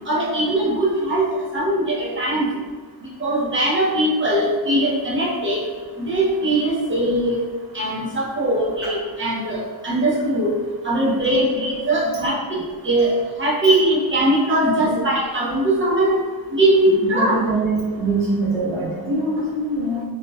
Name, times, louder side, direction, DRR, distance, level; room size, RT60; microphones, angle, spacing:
voice 1, 0.1-1.2 1.5-2.5 3.2-5.6 6.0-7.4 7.7-10.5 10.8-12.4 12.8-13.1 13.4-16.2 16.5-17.3, right 1 dB, 25° right, -6 dB, 0.6 m, -20 dB
voice 2, 17.1-20.0, right 2 dB, 80° right, -5 dB, 0.8 m, -23 dB
2.7 x 2.1 x 2.3 m, 1.4 s
wide cardioid pair, 135°, 47 cm